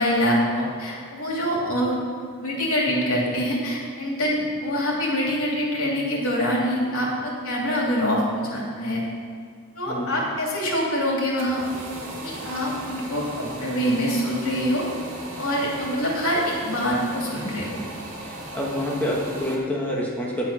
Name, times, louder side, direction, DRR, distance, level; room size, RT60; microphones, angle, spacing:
voice 1, 0.0-2.0 2.4-9.0 9.8-11.6 12.2-14.8 15.4-17.7, equal, 85° left, -3 dB, 2.9 m, -25 dB
voice 2, 9.9-10.2 18.2-20.5, left 1 dB, 5° left, -4 dB, 1.4 m, -27 dB
sound 1, 11.1-19.6, right 1 dB, 75° right, 2.1 m, -37 dB
10.0 x 7.8 x 5.7 m, 2.1 s
head